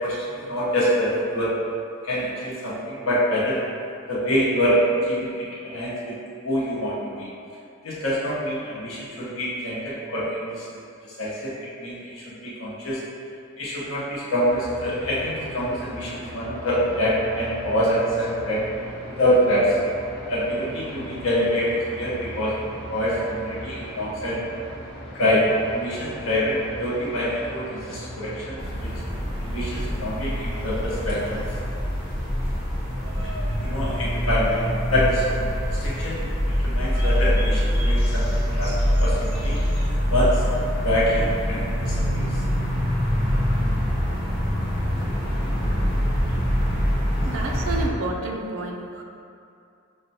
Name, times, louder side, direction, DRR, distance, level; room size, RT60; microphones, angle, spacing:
voice 1, 0.0-1.5 2.0-3.6 4.1-6.2 6.4-7.3 7.8-10.6 11.2-11.5 11.8-13.0 13.6-18.6 19.2-19.9 20.3-22.6 22.9-24.4 25.1-28.9 29.4-31.4 33.6-35.5 35.8-36.3 36.6-39.6 40.1-40.4 40.8-42.3, equal, 65° left, -7 dB, 0.9 m, -25 dB
sound 1, 14.4-31.6, equal, 25° left, 0.7 m, -39 dB
sound 2, 28.6-47.9, equal, 45° left, 1.1 m, -24 dB
Bird vocalization bird call bird song, 32.9-40.9, left 1 dB, 85° right, 0.7 m, -41 dB
voice 2, 47.2-49.0, right 2 dB, 65° right, 1 dB, 0.4 m, -30 dB
5.7 x 2.2 x 2.7 m, 2.5 s
head